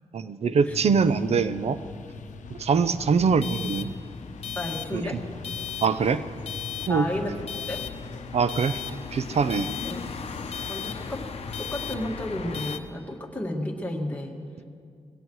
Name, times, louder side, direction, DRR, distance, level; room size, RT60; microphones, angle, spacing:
voice 1, 0.1-1.8 2.5-3.9 4.9-5.2 5.8-6.3 6.9-7.1 8.3-9.7, right 5 dB, 60° right, 13 dB, 0.6 m, -23 dB
sound 1, 0.7-12.7, left 4 dB, 85° left, 0.7 m, -43 dB
sound 2, 2.9-12.8, left 6 dB, 55° left, 0.8 m, -36 dB
voice 2, 4.6-5.2 6.9-7.8 9.8-10.0 10.7-11.3 11.6-14.4, left 1 dB, 10° left, -1 dB, 1.9 m, -32 dB
21.0 x 17.0 x 3.2 m, 2.2 s
wide cardioid pair, 110°, 12 cm